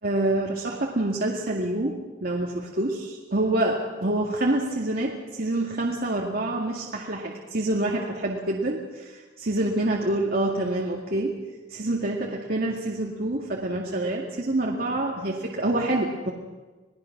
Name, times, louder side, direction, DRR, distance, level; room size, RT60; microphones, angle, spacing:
voice 1, 0.0-11.4 11.7-16.3, right 1 dB, 55° right, -2 dB, 2.1 m, -27 dB
27.5 x 19.0 x 6.0 m, 1.3 s
head